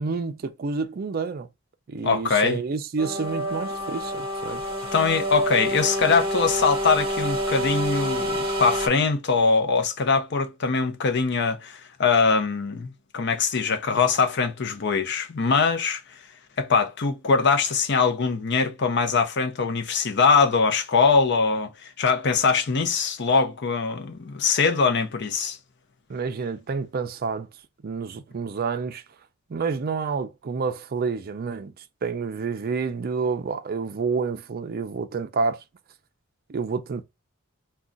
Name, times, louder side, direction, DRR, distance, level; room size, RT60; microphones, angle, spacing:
voice 1, 0.0-1.5 1.9-4.6 26.1-27.5 27.8-29.0 29.5-35.6 36.5-37.0, right 5 dB, 45° right, 0.4 m, -29 dB
voice 2, 2.0-2.6 4.9-16.0 16.6-25.6, left 5 dB, 55° left, 0.6 m, -22 dB
sound 1, 3.0-8.9, equal, 25° right, 0.8 m, -27 dB
2.4 x 2.3 x 3.8 m
head